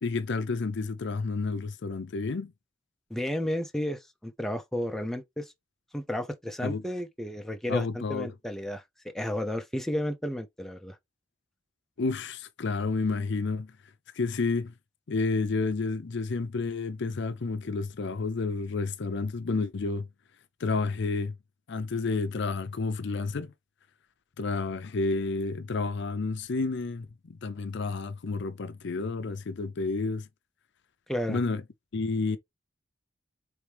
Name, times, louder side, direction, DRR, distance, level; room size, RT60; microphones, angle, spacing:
voice 1, 0.0-2.5 6.6-6.8 7.7-8.3 12.0-13.7 14.2-14.7 15.1-20.1 20.6-21.3 21.7-23.5 24.4-30.3 31.3-31.6 31.9-32.4, left 3 dB, 60° left, 0.5 m, -30 dB
voice 2, 3.1-5.5 5.9-11.0 31.1-31.4, left 1 dB, ahead, 0.6 m, -32 dB
4.7 x 3.4 x 3.4 m
head